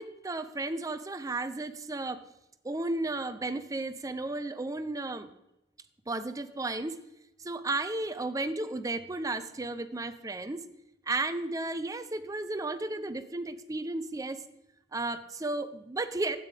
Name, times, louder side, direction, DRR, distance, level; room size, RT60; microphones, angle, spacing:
voice 1, 0.0-2.2 2.6-5.3 6.1-7.0 7.4-10.6 11.1-14.4 14.9-16.4, right 2 dB, 20° right, 11 dB, 0.5 m, -33 dB
12.5 x 9.1 x 3.4 m, 0.90 s
head